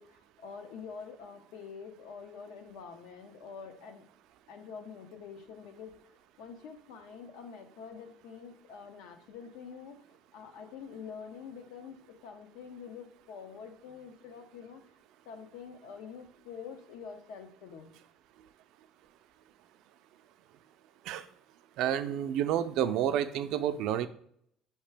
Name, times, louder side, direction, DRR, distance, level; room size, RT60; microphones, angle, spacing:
voice 1, 0.0-4.1 4.5-5.9 6.4-10.0 10.3-14.8 15.2-17.9, left 6 dB, 80° left, 7 dB, 0.7 m, -46 dB
voice 2, 21.8-24.1, right 10 dB, 65° right, 11 dB, 0.3 m, -29 dB
5.6 x 2.9 x 3.3 m, 0.68 s
cardioid pair, 155°, 0 cm